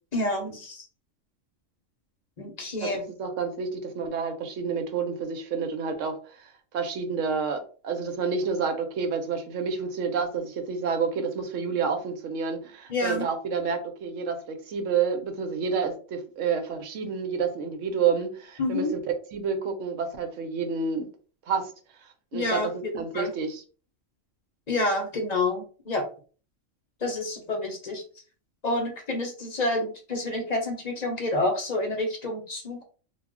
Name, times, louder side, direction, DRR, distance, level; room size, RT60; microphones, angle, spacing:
voice 1, 0.1-0.8 2.4-3.0 12.9-13.3 18.6-18.9 22.3-23.3 24.7-26.0 27.0-28.0 28.6-32.8, left 2 dB, 40° left, 2 dB, 0.7 m, -28 dB
voice 2, 2.8-18.9 19.3-21.1 21.5-21.7 22.0-23.6, right 5 dB, 75° right, 5 dB, 1.0 m, -29 dB
2.4 x 2.1 x 3.5 m, 0.39 s
omnidirectional pair, 1.3 m